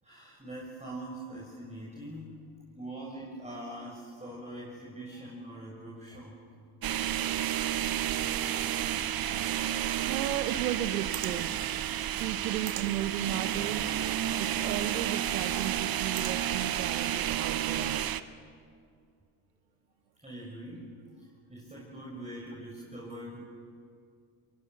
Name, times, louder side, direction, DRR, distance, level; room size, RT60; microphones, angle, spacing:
voice 1, 0.0-2.4 2.7-6.4 20.2-23.4, right 1 dB, 15° right, -4 dB, 6.8 m, -43 dB
sound 1, 6.8-18.2, right 11 dB, 45° right, 1.0 m, -31 dB
voice 2, 10.1-11.5 12.2-13.9 14.4-18.0, right 11 dB, 90° right, 10 dB, 0.8 m, -34 dB
28.0 x 22.5 x 6.8 m, 2.3 s
hypercardioid pair, 55°, 48 cm